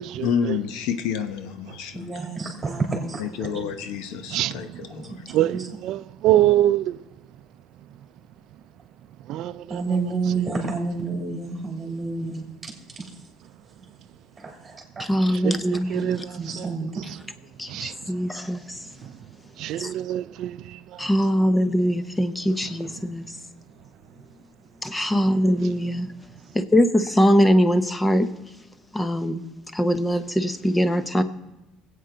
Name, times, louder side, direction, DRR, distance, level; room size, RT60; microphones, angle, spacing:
voice 1, 0.2-2.2 3.2-5.2 5.6-5.7, left 7 dB, 80° left, 0.9 m, -29 dB
voice 2, 1.9-3.4 4.9-5.1 5.4-5.7 9.7-12.4 13.0-13.1 14.4-14.8 16.3-17.0, right 4 dB, 15° right, 3.1 m, -29 dB
voice 3, 5.3-7.0 9.3-9.8 15.4-16.6 17.7-17.9 19.6-20.6, right 13 dB, 65° right, 0.4 m, -24 dB
voice 4, 15.0-16.2 17.6-18.9 19.8-19.9 21.0-23.4 24.8-26.1 26.5-28.3 28.9-29.4 29.7-31.2, equal, 10° left, 0.9 m, -22 dB
22.0 x 8.4 x 3.9 m
cardioid pair, 110°, 0 cm